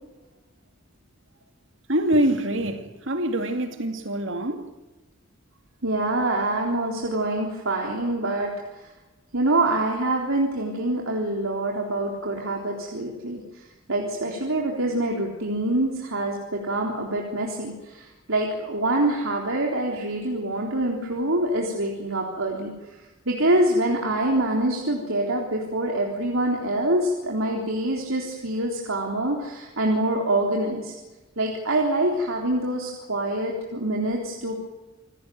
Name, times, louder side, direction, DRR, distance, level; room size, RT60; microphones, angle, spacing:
voice 1, 1.9-4.6, right 1 dB, 65° right, 2.4 m, -25 dB
voice 2, 5.8-8.5 9.3-13.4 13.9-22.7 23.3-30.9 31.4-34.6, right 1 dB, 80° right, 3.7 m, -25 dB
28.0 x 16.5 x 9.4 m
head